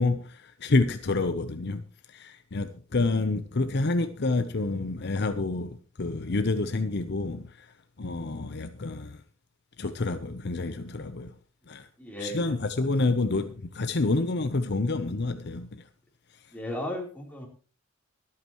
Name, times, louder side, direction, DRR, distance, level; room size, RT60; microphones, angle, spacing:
voice 1, 0.0-7.7 8.0-9.2 9.8-11.3 11.7-11.9 12.2-15.8, left 3 dB, 55° left, 0.8 m, -28 dB
voice 2, 12.0-12.9 13.2-13.3 16.5-17.5, left 1 dB, 10° left, 3.8 m, -36 dB
23.5 x 8.7 x 3.1 m
head